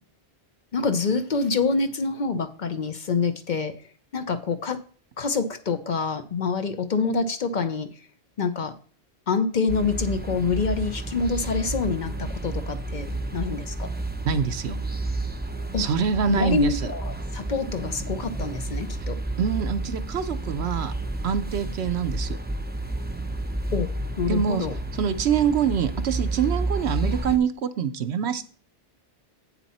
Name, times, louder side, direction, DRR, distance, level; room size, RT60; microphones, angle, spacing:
voice 1, 0.7-4.8 5.2-8.0 8.4-8.7 9.3-13.9 15.7-15.9 16.3-19.2 23.7-23.9 24.2-24.7 27.0-27.3, left 4 dB, 50° left, 9 dB, 0.8 m, -26 dB
sound 1, 9.7-27.4, right 2 dB, 10° right, 0.7 m, -31 dB
voice 2, 14.2-14.8 15.8-16.7 19.4-20.9 21.2-22.4 24.3-24.7 25.0-28.5, right 7 dB, 80° right, 10 dB, 1.0 m, -25 dB
8.5 x 7.2 x 4.2 m, 0.43 s
omnidirectional pair, 1.1 m